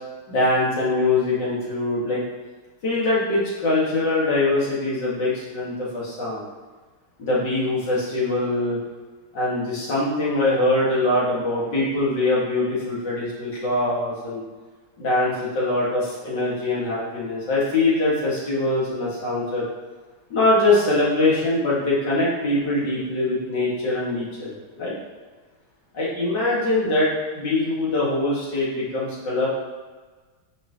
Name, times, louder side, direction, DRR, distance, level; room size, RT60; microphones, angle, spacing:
voice 1, 0.3-2.2 2.8-6.4 7.2-8.8 9.3-14.4 15.0-19.7 20.3-24.9 25.9-29.5, left 2 dB, 55° left, -7 dB, 2.8 m, -23 dB
9.0 x 5.4 x 3.2 m, 1.4 s
omnidirectional pair, 2.4 m